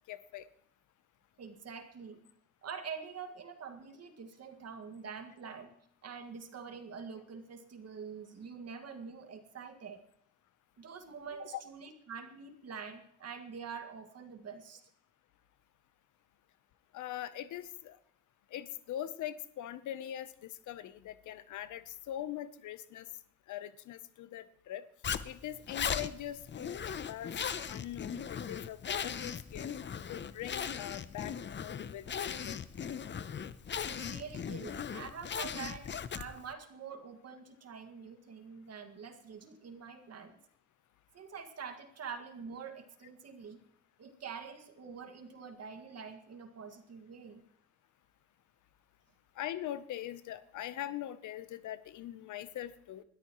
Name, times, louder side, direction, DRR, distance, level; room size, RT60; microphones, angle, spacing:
voice 1, 0.1-0.5 11.5-11.6 16.9-18.0 18.5-23.1 23.5-24.8 25.2-27.4 27.7-29.7 30.1-32.6 49.4-53.0, left 12 dB, 75° left, 15 dB, 0.9 m, -42 dB
voice 2, 1.4-2.2 2.6-5.7 6.0-10.0 10.8-14.8 33.9-40.4 41.1-43.6 44.0-47.4, right 6 dB, 55° right, 6 dB, 2.0 m, -46 dB
Zipper (clothing), 25.0-36.5, left 7 dB, 40° left, 0.7 m, -38 dB
20.5 x 13.5 x 3.1 m, 0.67 s
cardioid pair, 90°, 30 cm